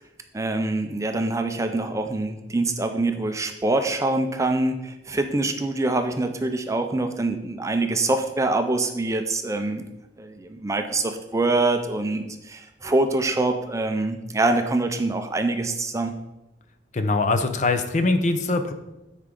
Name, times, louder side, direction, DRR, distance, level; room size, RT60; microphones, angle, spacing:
voice 1, 0.3-9.8 10.2-16.1, right 2 dB, 15° right, 6 dB, 0.4 m, -25 dB
voice 2, 16.9-18.7, left 3 dB, 40° left, 9 dB, 0.6 m, -22 dB
9.7 x 4.6 x 3.8 m, 0.95 s
head